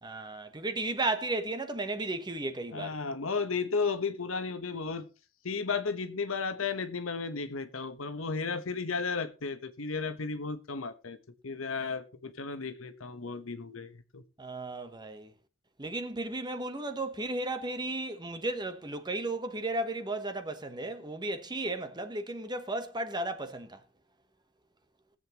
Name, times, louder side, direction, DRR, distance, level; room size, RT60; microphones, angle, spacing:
voice 1, 0.0-2.9 14.4-15.3 15.8-23.8, right 2 dB, 20° right, 1.1 m, -34 dB
voice 2, 2.7-5.1 5.4-11.2 11.4-14.2, left 4 dB, 75° left, 1.2 m, -34 dB
21.5 x 8.0 x 3.0 m
head